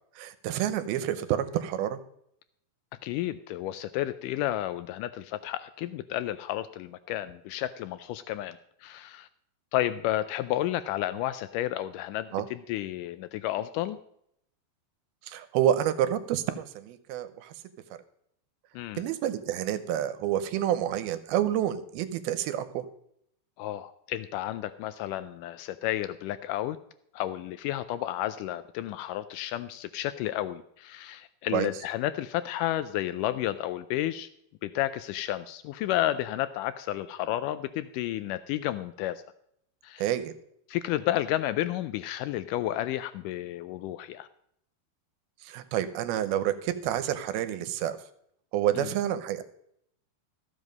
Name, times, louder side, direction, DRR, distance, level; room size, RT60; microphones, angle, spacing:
voice 1, 0.2-2.0 12.3-12.5 15.2-17.5 19.0-22.8 31.5-31.7 40.0-40.3 45.4-48.0 48.5-49.4, right 11 dB, 90° right, 12 dB, 2.8 m, -28 dB
voice 2, 3.0-9.3 9.7-14.0 18.7-19.0 23.6-26.8 27.1-34.3 34.6-39.2 39.8-40.1 40.7-44.3 48.8-48.9, left 14 dB, 85° left, 13 dB, 1.8 m, -31 dB
14.0 x 8.0 x 5.3 m, 0.71 s
omnidirectional pair, 4.3 m